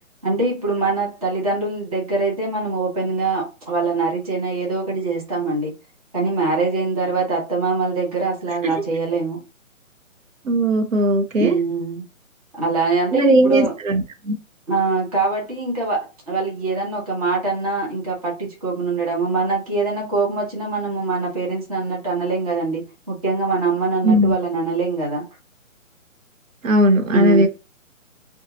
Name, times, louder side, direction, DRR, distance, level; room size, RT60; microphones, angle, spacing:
voice 1, 0.2-5.7 6.1-9.4 11.4-12.0 12.5-13.7 14.7-22.8 23.1-25.3 27.1-27.4, right 3 dB, 30° right, 0.7 m, -23 dB
voice 2, 10.4-11.6 13.1-14.4 24.0-24.3 26.6-27.5, right 1 dB, 70° right, 0.8 m, -17 dB
2.6 x 2.3 x 2.8 m
hypercardioid pair, 170°, 41 cm